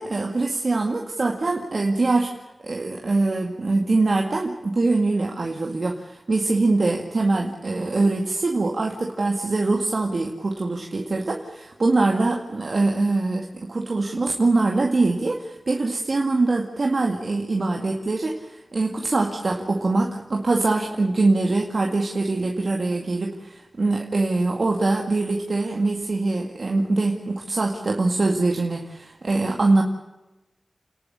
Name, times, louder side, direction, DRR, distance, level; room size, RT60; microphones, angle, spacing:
voice 1, 0.0-2.3 2.6-29.8, right 3 dB, 65° right, 1 dB, 2.1 m, -23 dB
29.5 x 11.5 x 9.9 m, 1.0 s
wide cardioid pair, 55°, 0 cm